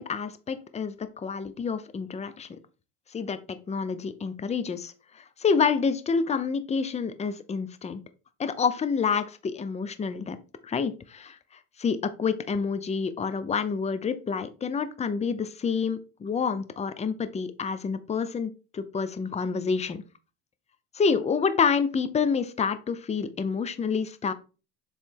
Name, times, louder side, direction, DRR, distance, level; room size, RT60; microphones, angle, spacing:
voice 1, 0.0-2.6 3.1-8.0 8.4-10.4 10.6-11.4 11.8-20.0 20.9-24.3, left 5 dB, 20° left, 11 dB, 0.7 m, -28 dB
7.4 x 3.3 x 4.6 m, 0.33 s
supercardioid pair, 110°, 31 cm